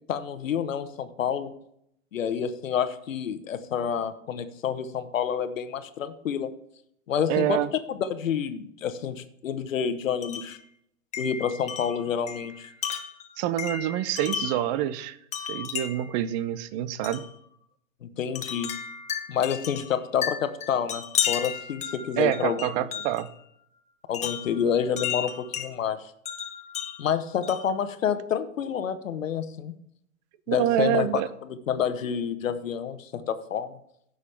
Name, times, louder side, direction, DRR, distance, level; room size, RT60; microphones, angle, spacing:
voice 1, 0.1-1.5 2.1-6.5 7.1-7.6 7.9-10.6 11.2-12.7 18.0-18.7 19.3-22.7 24.1-26.1 27.0-29.7 30.5-31.2 31.7-33.8, left 8 dB, 75° left, 10 dB, 1.1 m, -28 dB
voice 2, 7.3-7.7 13.4-17.3 22.2-23.3 30.5-31.3, right 12 dB, 35° right, 15 dB, 0.7 m, -27 dB
Wind chime, 10.2-10.6 11.1-14.7 15.3-16.1 17.0-17.3 18.4-23.3 24.1-25.7 26.3-27.8, left 8 dB, 15° left, 0.9 m, -33 dB
15.5 x 6.4 x 3.4 m, 0.73 s
hypercardioid pair, 115°, 40 cm